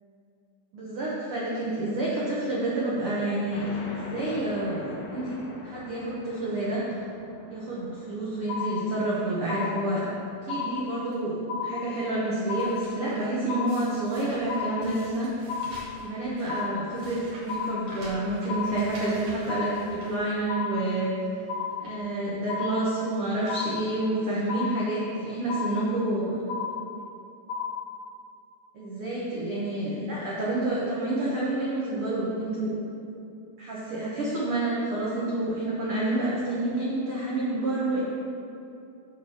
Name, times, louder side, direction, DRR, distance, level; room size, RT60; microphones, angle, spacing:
voice 1, 0.7-5.4 5.6-7.0 7.5-15.3 16.0-21.1 21.8-26.4 28.7-32.7 33.6-38.0, right 2 dB, 80° right, -7 dB, 1.2 m, -29 dB
sound 1, 3.5-10.7, left 2 dB, 60° left, 1.9 m, -44 dB
sound 2, 8.5-9.2 9.5-10.2 10.5-11.2 11.5-12.2 12.5-13.2 13.5-14.2 14.5-15.2 15.5-16.2 16.5-17.2 17.5-18.2 18.5-19.2 19.5-20.2 20.5-21.2 21.5-22.2 22.5-23.2 23.5-24.2 24.5-25.2 25.5-26.2 26.5-27.2 27.5-28.2, left 6 dB, 85° left, 2.6 m, -33 dB
sound 3, 10.7-11.1 11.7-12.1 12.3-13.3 13.7-20.8 21.2-21.3 21.7-22.1 22.9-23.0 23.3-23.6 23.9-24.0 24.9-25.1 25.4-25.9 26.7-26.8 27.0-27.1, right 1 dB, 50° right, 2.6 m, -48 dB
8.9 x 4.7 x 6.3 m, 2.7 s
omnidirectional pair, 4.3 m